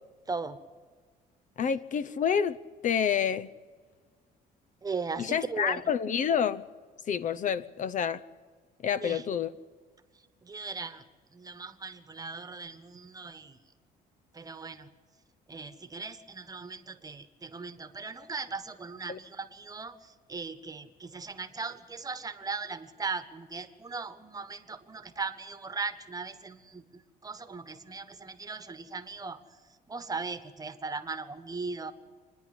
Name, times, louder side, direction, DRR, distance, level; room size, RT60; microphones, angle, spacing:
voice 1, 1.6-2.6 2.8-3.5 5.2-6.6 7.1-8.2 8.8-9.5 19.1-19.2, left 8 dB, 50° left, 0.7 m, -28 dB
voice 2, 4.8-5.8 9.0-9.2 10.4-11.0 11.3-13.6 14.3-14.9 15.5-20.0 20.3-29.4 29.9-31.9, right 4 dB, 20° right, 1.3 m, -38 dB
26.5 x 10.5 x 9.7 m
cardioid pair, 110°, 17 cm